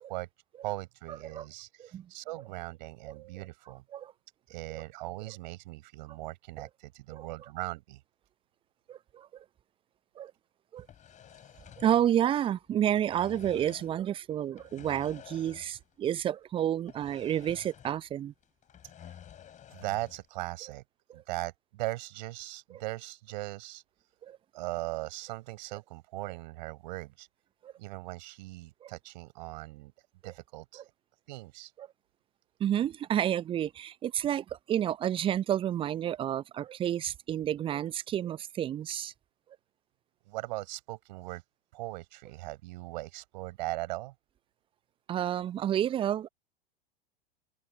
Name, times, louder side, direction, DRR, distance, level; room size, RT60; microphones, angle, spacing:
voice 1, 0.6-3.8 4.5-8.0 19.7-20.8 21.1-23.8 24.5-27.3 27.8-29.9 30.2-30.8 31.3-31.7 40.2-41.4 41.7-44.1, right 19 dB, 50° right, 5.0 m, -39 dB
voice 2, 1.8-2.1 3.1-3.2 3.9-4.1 4.7-4.8 6.6-6.7 7.1-7.3 8.9-9.4 10.2-10.3 10.7-10.9 11.8-18.3 21.1-21.2 24.2-24.4 27.6-27.7 28.8-28.9 31.8-31.9 32.6-39.1 45.1-46.3, right 10 dB, 20° right, 0.6 m, -30 dB
sound 1, 10.8-12.5 12.8-14.0 14.5-15.9 16.2-16.3 16.9-18.1 18.4-20.3, left 9 dB, 25° left, 6.7 m, -51 dB
open air
figure-of-eight pair, 90°, 29 cm